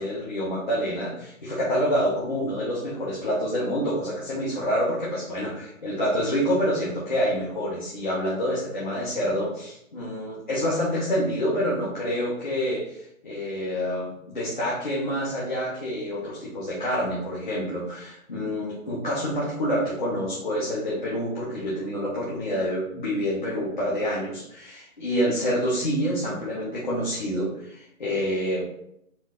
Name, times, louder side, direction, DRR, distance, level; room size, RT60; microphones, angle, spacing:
voice 1, 0.0-28.6, equal, 35° left, -8 dB, 0.9 m, -27 dB
4.4 x 2.7 x 3.6 m, 0.76 s
hypercardioid pair, 175°, 42 cm